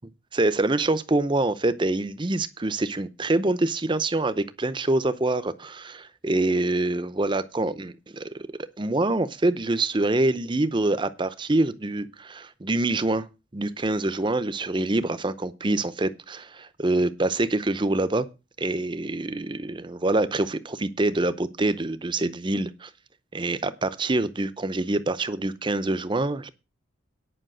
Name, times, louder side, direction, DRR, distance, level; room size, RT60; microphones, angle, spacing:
voice 1, 0.3-8.5 8.8-13.3 13.5-18.3 18.6-22.9 23.3-26.5, right 2 dB, 25° right, 0.6 m, -25 dB
10.0 x 5.7 x 7.7 m
head